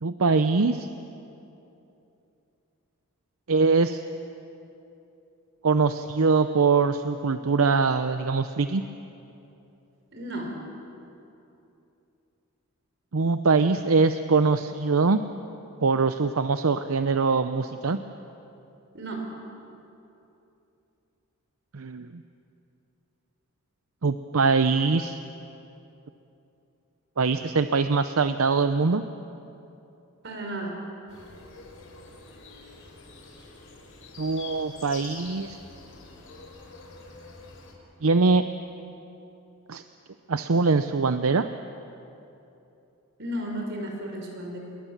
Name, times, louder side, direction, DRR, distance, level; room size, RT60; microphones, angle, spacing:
voice 1, 0.0-0.9 3.5-4.0 5.6-8.8 13.1-15.2 15.8-18.0 21.7-22.2 24.0-25.2 27.2-29.0 34.2-35.6 38.0-38.4 39.7-39.8 40.3-41.5, right 4 dB, 80° right, 10 dB, 0.7 m, -23 dB
voice 2, 10.1-10.5 18.9-19.3 30.2-30.8 43.2-44.6, right 1 dB, 55° right, 1 dB, 5.2 m, -33 dB
sound 1, 31.1-37.7, left 3 dB, 70° left, 5.2 m, -46 dB
28.0 x 22.0 x 7.3 m, 2.8 s
head